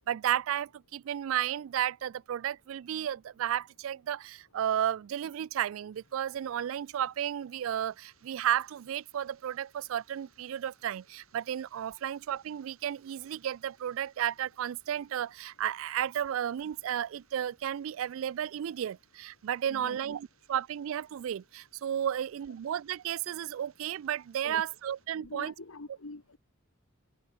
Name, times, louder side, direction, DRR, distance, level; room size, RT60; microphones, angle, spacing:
voice 1, 0.0-25.5, right 10 dB, 75° right, 0.3 m, -33 dB
sound 1, 5.9-25.1, right 8 dB, 90° right, 5.1 m, -69 dB
voice 2, 19.6-20.0 24.4-24.6 25.2-26.4, left 3 dB, 85° left, 1.4 m, -44 dB
head